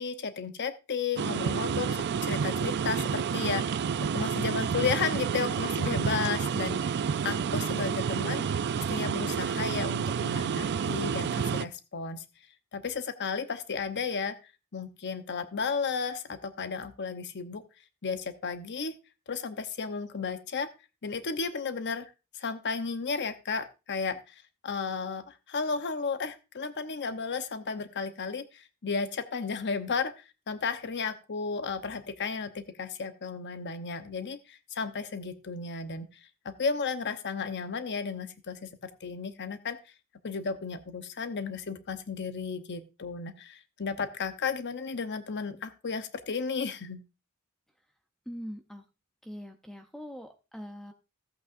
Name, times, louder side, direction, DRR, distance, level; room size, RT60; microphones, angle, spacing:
voice 1, 0.0-3.9 4.1-6.9 7.2-8.4 8.8-12.2 12.7-14.4 14.7-17.6 18.0-19.0 19.3-20.7 21.0-22.1 22.3-24.3 24.6-30.1 30.5-36.1 36.4-39.8 40.2-47.0, left 5 dB, 50° left, 10 dB, 0.8 m, -33 dB
sound 1, 1.2-11.7, right 6 dB, 50° right, 0.4 m, -29 dB
voice 2, 48.3-48.8 49.2-50.9, equal, ahead, 6 dB, 0.6 m, -42 dB
14.5 x 8.4 x 2.5 m, 0.29 s
head